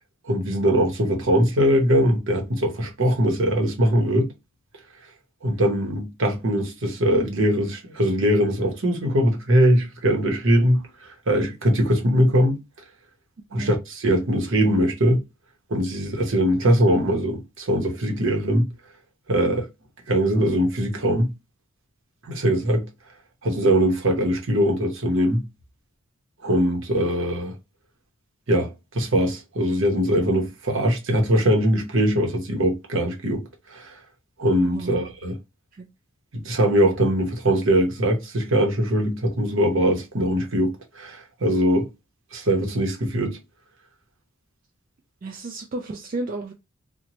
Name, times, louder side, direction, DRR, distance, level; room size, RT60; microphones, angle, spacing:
voice 1, 0.3-4.3 5.4-12.6 13.5-15.2 15.7-18.7 19.3-19.7 20.1-21.3 22.2-22.9 23.4-25.4 26.4-27.5 28.5-33.4 33.7-33.9 34.4-35.4 36.3-41.9 42.3-43.4, equal, 65° right, 0.8 m, -21 dB
voice 2, 34.6-35.1 35.7-35.9 45.2-46.5, right 2 dB, 40° right, 0.3 m, -33 dB
2.9 x 2.1 x 2.8 m
head